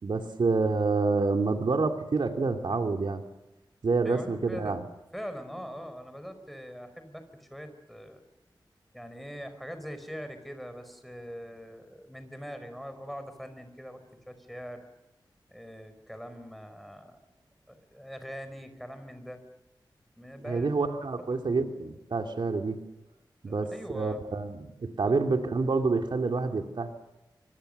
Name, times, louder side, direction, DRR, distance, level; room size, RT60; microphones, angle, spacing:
voice 1, 0.0-3.2 3.8-4.8 20.4-22.8 23.4-27.0, right 4 dB, 75° right, 4 dB, 2.7 m, -28 dB
voice 2, 4.0-4.8 5.1-8.2 8.9-14.8 15.5-17.2 17.7-19.4 20.2-20.7 23.5-24.2 25.0-25.1, equal, ahead, 9 dB, 4.9 m, -42 dB
29.0 x 26.0 x 6.7 m, 1.0 s
wide cardioid pair, 105°, 8 cm